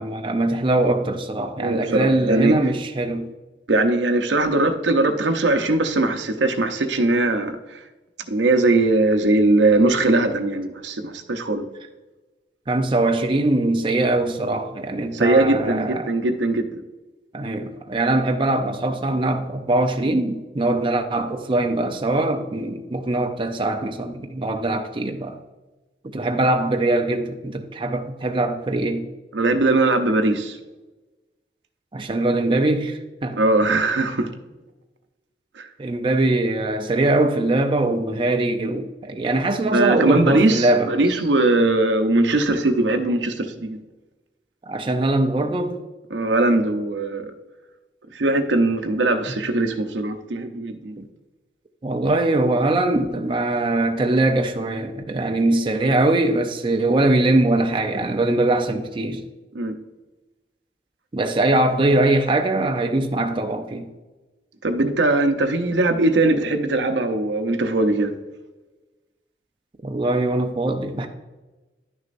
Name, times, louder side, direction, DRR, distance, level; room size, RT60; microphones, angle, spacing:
voice 1, 0.0-3.3 12.7-16.1 17.3-25.4 26.0-29.1 31.9-33.4 35.8-40.9 44.7-45.8 51.0-51.1 51.8-59.2 61.1-63.9 69.8-71.1, right 2 dB, 30° right, 0.5 m, -22 dB
voice 2, 1.6-2.5 3.7-7.8 8.3-11.6 15.1-16.7 29.3-30.6 33.4-34.3 35.6-35.7 39.7-43.8 46.1-47.3 48.1-51.0 59.5-59.7 64.6-68.1, right 2 dB, 80° right, 0.7 m, -20 dB
11.0 x 6.4 x 2.5 m
head